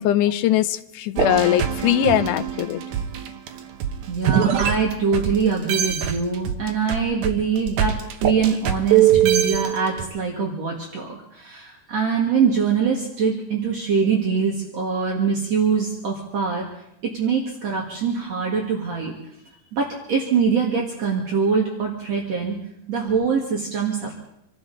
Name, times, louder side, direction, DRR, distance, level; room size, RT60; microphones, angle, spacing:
voice 1, 0.0-2.8, left 12 dB, 85° left, 10 dB, 2.3 m, -21 dB
sound 1, 1.2-5.4 5.7-10.0, right 10 dB, 75° right, 2.6 m, -22 dB
voice 2, 4.1-16.6 17.0-19.1 19.7-22.6 22.9-24.1, right 5 dB, 60° right, -2 dB, 3.1 m, -23 dB
26.5 x 13.0 x 4.1 m, 0.79 s
omnidirectional pair, 3.6 m